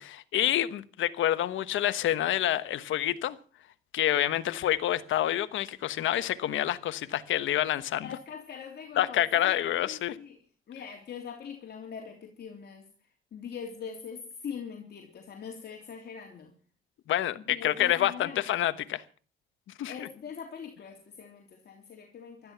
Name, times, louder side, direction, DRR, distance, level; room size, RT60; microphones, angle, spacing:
voice 1, 0.0-3.4 3.9-8.1 9.0-10.2 17.1-19.0 19.8-20.1, left 12 dB, 75° left, 1.2 m, -28 dB
voice 2, 8.0-10.4 10.7-12.9 13.3-16.5 17.3-18.4 19.9-22.5, left 7 dB, 55° left, 3.2 m, -42 dB
16.0 x 13.0 x 5.8 m
cardioid pair, 90°, 20 cm